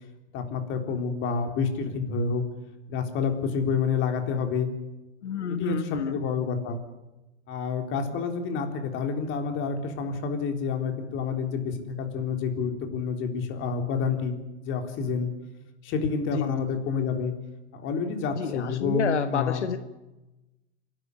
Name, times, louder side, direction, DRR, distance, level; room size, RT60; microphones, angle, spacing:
voice 1, 0.3-2.4 2.9-4.7 5.5-6.8 7.5-15.3 15.8-17.3 17.7-19.7, left 5 dB, 35° left, 5 dB, 3.8 m, -28 dB
voice 2, 5.2-6.2 16.3-16.6 18.3-19.8, left 8 dB, 85° left, 10 dB, 1.5 m, -29 dB
27.0 x 12.5 x 9.9 m, 1.0 s
hypercardioid pair, 125°, 34 cm